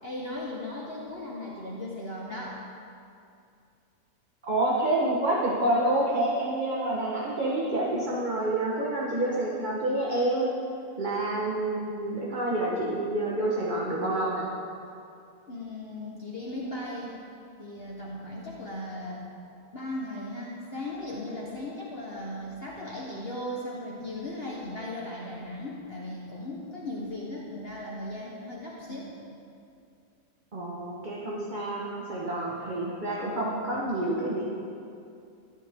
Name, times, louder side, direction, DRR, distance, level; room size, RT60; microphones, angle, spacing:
voice 1, 0.0-2.5 15.5-17.2 17.6-19.2 19.7-29.1, left 1 dB, 40° left, -4 dB, 1.4 m, -37 dB
voice 2, 4.4-10.5 11.0-14.5 28.9-29.0 30.5-34.5, right 1 dB, 30° right, -5 dB, 1.3 m, -28 dB
14.0 x 11.0 x 3.7 m, 2.5 s
omnidirectional pair, 1.8 m